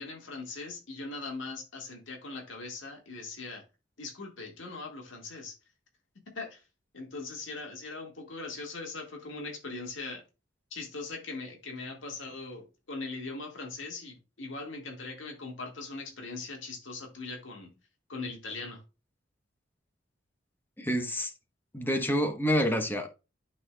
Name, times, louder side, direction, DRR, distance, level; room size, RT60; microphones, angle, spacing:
voice 1, 0.0-3.6 4.0-5.5 6.4-6.6 6.9-10.2 10.7-17.7 18.1-18.8, left 3 dB, 85° left, 1.8 m, -40 dB
voice 2, 20.8-21.3 21.7-23.1, equal, 10° left, 1.0 m, -28 dB
11.5 x 4.2 x 2.3 m
head